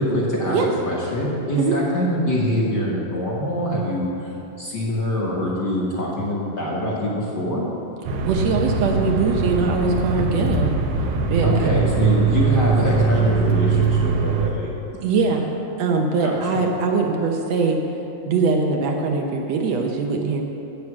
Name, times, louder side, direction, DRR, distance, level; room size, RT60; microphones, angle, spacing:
voice 1, 0.0-0.6 0.8-4.3 4.6-7.7 11.4-14.7 16.2-16.6, equal, 50° left, -5 dB, 1.5 m, -24 dB
sound 1, 8.0-14.5, right 4 dB, 85° right, 2.3 m, -21 dB
voice 2, 8.2-10.7 11.3-11.8 15.0-17.8 18.3-20.4, right 4 dB, 70° right, 2 dB, 1.8 m, -22 dB
9.5 x 8.2 x 7.2 m, 3.0 s
omnidirectional pair, 3.3 m